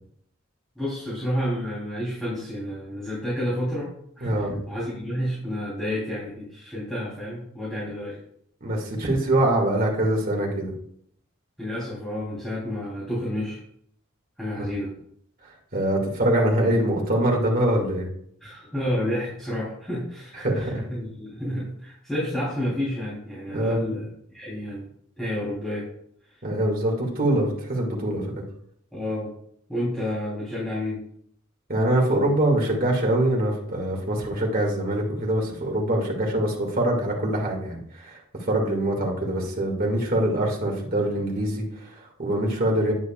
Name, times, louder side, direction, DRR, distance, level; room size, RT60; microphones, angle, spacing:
voice 1, 0.8-8.2 11.6-13.6 14.4-14.9 18.4-24.8 25.2-25.9 26.3-26.4 28.9-29.3 29.7-31.0, left 1 dB, ahead, -10 dB, 3.6 m, -30 dB
voice 2, 4.2-4.5 8.6-10.7 15.7-18.1 20.4-20.7 23.5-23.9 26.4-28.3 31.7-42.9, right 1 dB, 45° right, -1 dB, 2.3 m, -24 dB
9.5 x 9.4 x 2.5 m, 0.67 s
head